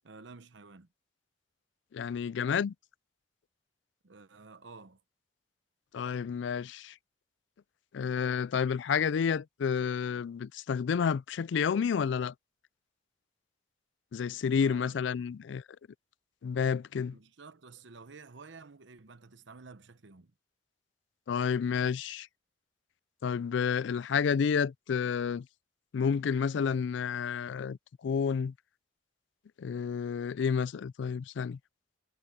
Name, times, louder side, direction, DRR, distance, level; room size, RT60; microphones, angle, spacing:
voice 1, 0.0-0.9 4.0-5.0 14.6-15.0 16.9-20.3, right 4 dB, 70° right, 0.9 m, -51 dB
voice 2, 1.9-2.7 5.9-6.9 7.9-12.3 14.1-15.6 16.4-17.1 21.3-22.3 23.2-25.5 25.9-27.8 28.0-28.5 29.6-31.6, left 6 dB, 70° left, 0.3 m, -30 dB
head